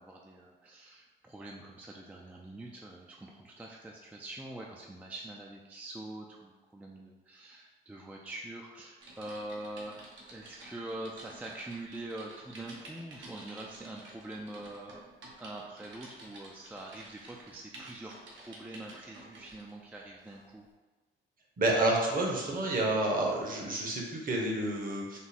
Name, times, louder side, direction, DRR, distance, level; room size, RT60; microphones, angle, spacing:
voice 1, 0.0-9.9 10.3-15.1 15.4-20.7, right 2 dB, 10° right, -1 dB, 0.3 m, -44 dB
Typing, 9.0-19.7 20.3-20.5, right 2 dB, 75° right, 0.9 m, -51 dB
voice 2, 21.6-25.2, right 2 dB, 45° right, -1 dB, 0.9 m, -29 dB
3.6 x 2.0 x 4.1 m, 1.3 s
cardioid pair, 90°, 20 cm